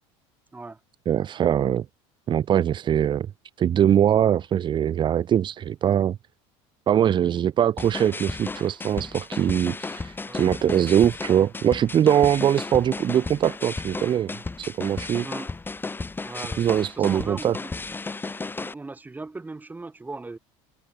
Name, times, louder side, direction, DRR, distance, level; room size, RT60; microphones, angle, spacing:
voice 1, 1.1-1.9 2.3-3.3 3.6-6.2 6.9-14.3 14.6-15.3 16.6-17.5, right 10 dB, 35° right, 0.6 m, -22 dB
sound 1, 7.8-18.7, left 3 dB, 15° left, 3.2 m, -34 dB
voice 2, 10.3-10.8 15.2-15.5 16.2-17.9 18.6-20.4, right 3 dB, 10° right, 1.7 m, -39 dB
supercardioid pair, 110°, 14 cm